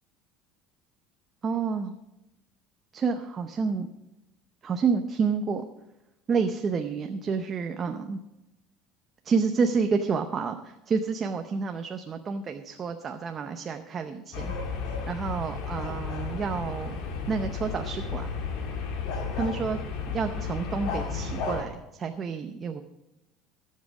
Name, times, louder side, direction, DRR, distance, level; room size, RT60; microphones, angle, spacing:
voice 1, 1.4-1.9 2.9-3.9 4.6-5.7 6.3-8.2 9.2-14.5 15.1-17.0 17.3-18.3 19.4-19.8 20.1-21.7 22.0-22.8, right 5 dB, 30° right, 6 dB, 0.7 m, -29 dB
sound 1, 14.3-21.6, left 5 dB, 65° left, 2.1 m, -33 dB
16.0 x 7.5 x 4.9 m, 0.93 s
cardioid pair, 145°, 0 cm